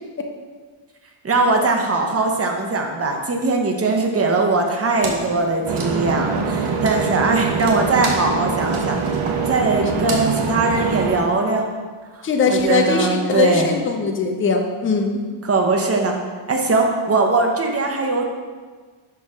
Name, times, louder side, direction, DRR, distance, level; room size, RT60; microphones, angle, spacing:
voice 1, 1.2-9.0 9.5-11.7 12.1-13.7 15.5-16.1 16.5-18.3, right 3 dB, 30° right, 2 dB, 0.9 m, -20 dB
Wood, 5.0-11.7, right 3 dB, 75° right, 1.1 m, -34 dB
sound 1, 5.7-11.2, right 5 dB, 60° right, 0.9 m, -23 dB
voice 2, 12.2-15.2, left 5 dB, 25° left, 3 dB, 0.6 m, -20 dB
5.6 x 4.6 x 4.8 m, 1.5 s
cardioid pair, 120°, 50 cm